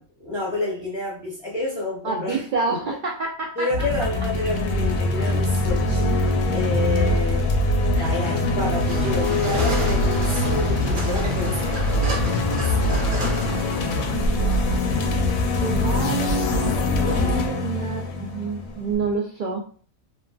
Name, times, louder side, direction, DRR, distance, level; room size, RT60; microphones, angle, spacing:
voice 1, 0.0-2.4 3.6-6.1 6.4-7.5 7.9-13.1, left 1 dB, 30° left, -5 dB, 0.6 m, -29 dB
voice 2, 2.0-3.9 7.9-8.1 14.1-15.1 15.4-16.7 17.0-19.7, right 4 dB, 80° right, 0 dB, 0.4 m, -29 dB
sound 1, 3.7-19.1, left 2 dB, 85° left, 1.0 m, -23 dB
sound 2, 8.5-19.0, right 1 dB, 50° right, 0.7 m, -33 dB
3.0 x 2.4 x 2.2 m, 0.41 s
omnidirectional pair, 1.4 m